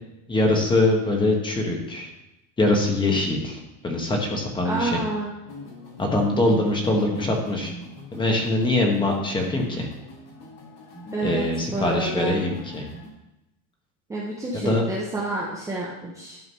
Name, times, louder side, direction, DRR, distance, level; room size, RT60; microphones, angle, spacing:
voice 1, 0.3-2.1 2.6-5.0 6.0-7.7 8.1-9.9 11.2-12.9 14.6-14.8, left 2 dB, 10° left, 1 dB, 1.2 m, -23 dB
voice 2, 4.6-5.3 11.1-11.4 11.7-12.4 14.1-16.4, right 2 dB, 10° right, -4 dB, 0.7 m, -29 dB
sound 1, 5.4-13.1, equal, 45° left, 1.9 m, -41 dB
11.5 x 4.0 x 5.4 m, 0.95 s
cardioid pair, 165°, 38 cm